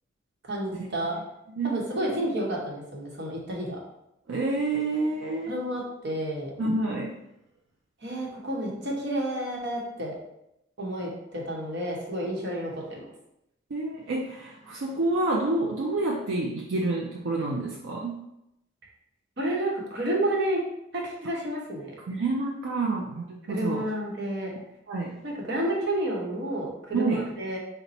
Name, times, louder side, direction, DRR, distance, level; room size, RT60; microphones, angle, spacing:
voice 1, 0.5-1.2 1.6-3.8 5.5-6.5 8.0-10.1 10.8-13.1 19.4-20.6 20.9-21.9 23.5-24.5 25.2-27.6, right 1 dB, 60° right, -2 dB, 1.0 m, -30 dB
voice 2, 1.5-2.2 4.3-5.6 6.6-7.2 13.7-18.2 22.1-23.9 24.9-25.2 26.9-27.2, right 2 dB, 85° right, -1 dB, 0.5 m, -28 dB
4.1 x 2.1 x 4.1 m, 0.84 s
head